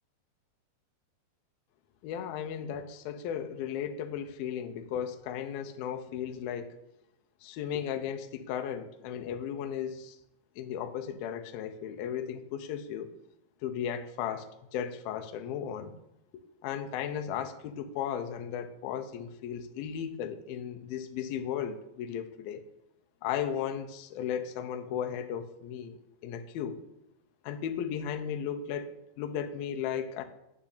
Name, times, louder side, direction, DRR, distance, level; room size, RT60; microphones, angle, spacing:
voice 1, 2.0-6.8 7.4-10.2 10.6-13.1 13.6-15.9 16.6-22.6 23.2-26.0 26.2-26.8 27.4-30.2, left 8 dB, 75° left, 7 dB, 2.5 m, -35 dB
9.6 x 6.1 x 8.3 m, 0.85 s
omnidirectional pair, 4.7 m